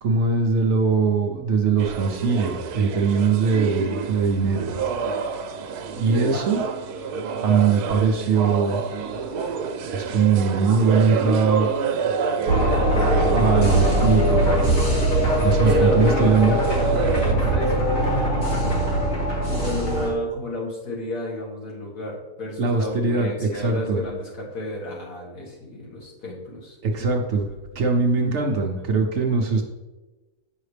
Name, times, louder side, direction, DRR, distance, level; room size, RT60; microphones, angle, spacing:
voice 1, 0.0-4.7 6.0-6.6 7.4-8.8 9.9-11.7 13.3-14.5 15.4-16.6 22.6-24.0 26.8-27.5 27.7-29.6, right 5 dB, 60° right, 2 dB, 0.9 m, -21 dB
sound 1, 1.8-17.3, right 6 dB, 85° right, 1.2 m, -29 dB
voice 2, 6.1-6.4 15.3-18.9 19.4-27.1 27.5-27.6 28.2-28.4 28.8-28.9 29.3-29.4, left 1 dB, 80° left, -5 dB, 2.4 m, -32 dB
sound 2, 12.5-20.1, right 1 dB, 50° left, 2.0 m, -21 dB
8.0 x 5.6 x 3.3 m, 1.2 s
omnidirectional pair, 1.6 m